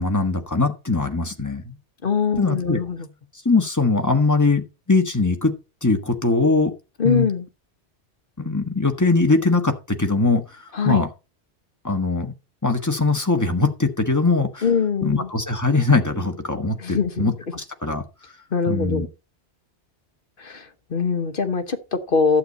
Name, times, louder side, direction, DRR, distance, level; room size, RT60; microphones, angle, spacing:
voice 1, 0.0-1.7 2.4-2.8 3.4-5.5 5.8-6.7 7.0-7.3 8.4-10.4 10.8-11.1 11.8-12.3 12.6-14.6 15.0-17.3 17.8-18.0 18.7-19.1, left 3 dB, 15° left, 1.5 m, -21 dB
voice 2, 2.0-3.1 7.0-7.5 10.7-11.0 14.6-15.3 16.8-17.6 18.5-19.1 20.4-22.4, left 5 dB, 55° left, 1.3 m, -23 dB
11.5 x 8.5 x 4.1 m
omnidirectional pair, 1.1 m